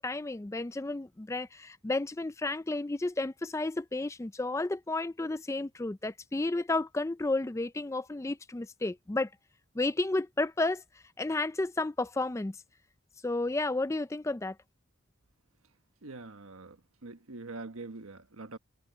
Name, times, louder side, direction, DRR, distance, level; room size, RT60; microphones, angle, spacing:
voice 1, 0.0-9.3 9.8-10.8 11.2-12.6 13.2-14.6, left 2 dB, 15° left, 0.4 m, -32 dB
voice 2, 16.0-18.6, right 3 dB, 85° right, 1.3 m, -44 dB
head